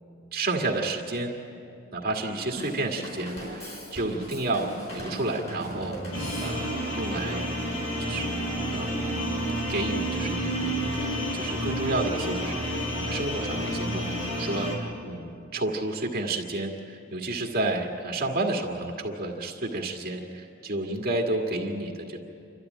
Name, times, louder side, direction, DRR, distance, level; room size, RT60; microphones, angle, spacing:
voice 1, 0.3-1.3 1.9-7.4 8.0-8.9 9.7-22.2, right 2 dB, 45° right, 0 dB, 1.8 m, -31 dB
Drum kit / Drum, 2.6-6.9, right 1 dB, 30° left, 5.2 m, -38 dB
sound 1, 6.1-14.8, equal, 75° left, 4.6 m, -30 dB
28.0 x 13.0 x 9.1 m, 2.6 s
head